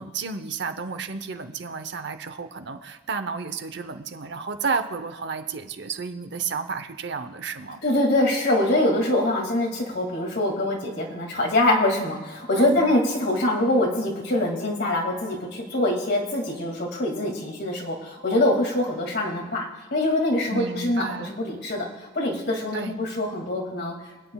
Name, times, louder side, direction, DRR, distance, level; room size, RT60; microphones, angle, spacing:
voice 1, 0.0-7.8 12.6-12.8 20.5-21.4 22.7-22.9, right 5 dB, 65° right, 9 dB, 0.8 m, -32 dB
voice 2, 7.8-21.9 22.1-23.9, left 1 dB, 65° left, 0 dB, 2.3 m, -24 dB
26.5 x 9.3 x 2.3 m, 1.2 s
head